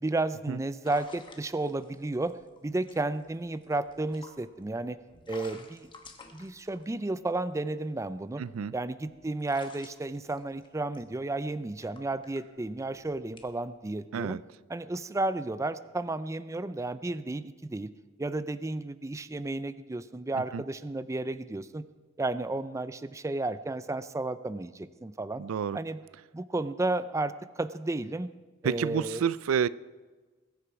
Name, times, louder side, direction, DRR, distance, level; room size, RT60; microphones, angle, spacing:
voice 1, 0.0-2.4 2.6-5.0 5.3-5.9 6.3-8.4 8.7-14.4 14.7-17.9 18.2-21.8 22.2-25.4 25.7-26.0 26.3-28.3 28.6-29.2, right 2 dB, 15° right, 0.4 m, -32 dB
sound 1, 0.8-7.5 8.1-13.8, left 3 dB, 25° left, 1.2 m, -52 dB
voice 2, 8.4-8.7 14.1-14.4 20.5-20.6 25.4-25.8 28.6-29.7, right 7 dB, 90° right, 0.4 m, -29 dB
21.0 x 8.2 x 4.8 m
head